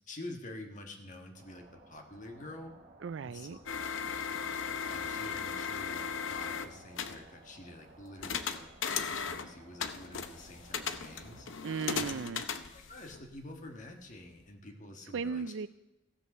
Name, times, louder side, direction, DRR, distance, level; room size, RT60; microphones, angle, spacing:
voice 1, 0.1-2.8 3.2-3.9 4.8-8.7 9.0-11.5 12.0-12.1 12.7-15.4, left 1 dB, 40° left, 4 dB, 1.5 m, -48 dB
sound 1, 1.3-11.5, right 2 dB, 55° right, 1.9 m, -58 dB
voice 2, 3.0-3.6 11.6-12.4 15.1-15.7, right 5 dB, 70° right, 16 dB, 0.4 m, -36 dB
sound 2, 3.7-7.2 8.2-9.5 9.8-13.4, left 6 dB, 85° left, 0.7 m, -37 dB
15.5 x 5.5 x 6.5 m, 0.93 s
head